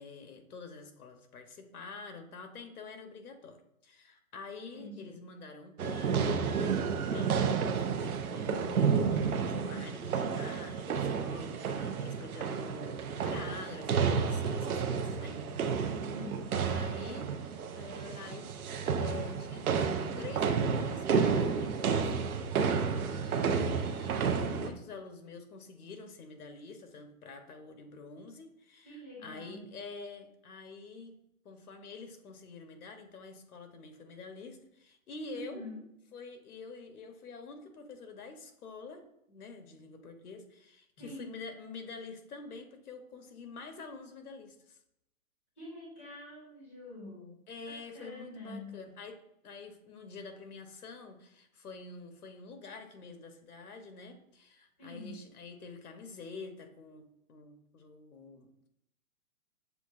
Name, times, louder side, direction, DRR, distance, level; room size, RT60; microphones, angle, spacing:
voice 1, 0.0-6.4 7.0-15.4 16.7-18.5 19.0-19.7 20.2-22.1 22.5-31.1 31.4-35.6 36.1-44.8 47.5-49.2 49.4-58.7, left 4 dB, 90° left, 6 dB, 1.0 m, -47 dB
voice 2, 4.7-5.2 16.1-16.5 23.3-23.7 28.8-29.7 35.3-35.8 41.0-41.3 45.6-48.8 54.8-55.1, left 1 dB, 10° left, -6 dB, 0.6 m, -46 dB
sound 1, 5.8-24.7, right 6 dB, 75° right, 0.7 m, -31 dB
6.9 x 2.5 x 2.5 m, 0.79 s
hypercardioid pair, 175°, 43 cm